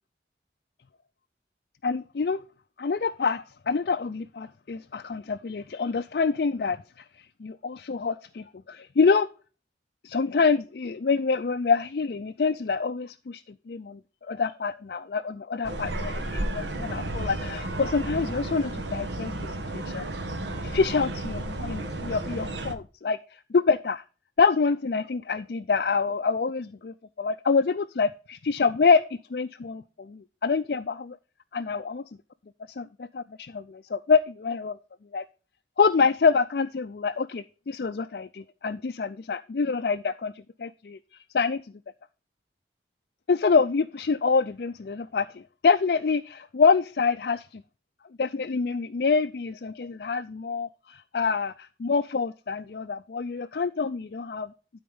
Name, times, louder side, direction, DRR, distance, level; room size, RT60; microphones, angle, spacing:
voice 1, 1.8-2.4 2.8-9.3 10.0-14.0 14.3-20.1 20.6-24.0 24.4-29.0 29.3-31.2 31.5-32.0 32.8-34.8 35.1-35.2 35.8-40.3 40.6-41.0 41.3-41.6 43.3-47.6 48.2-54.5, left 5 dB, 60° left, 0.4 m, -26 dB
sound 1, 15.6-22.7, right 1 dB, 85° right, 1.3 m, -33 dB
12.5 x 4.4 x 5.3 m
head